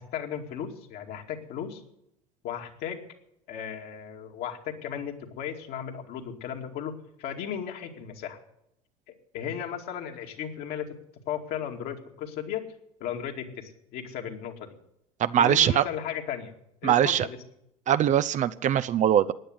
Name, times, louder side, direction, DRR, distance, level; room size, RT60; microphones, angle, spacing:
voice 1, 0.0-1.8 2.4-3.0 3.5-6.9 7.2-8.4 9.1-11.0 11.3-12.6 13.0-14.8 15.3-16.5 16.8-17.4, left 9 dB, 55° left, 3 dB, 2.5 m, -35 dB
voice 2, 15.2-15.8 16.8-17.3 17.9-19.3, right 10 dB, 40° right, 13 dB, 0.7 m, -22 dB
15.5 x 10.0 x 8.1 m, 0.78 s
hypercardioid pair, 75°, 19 cm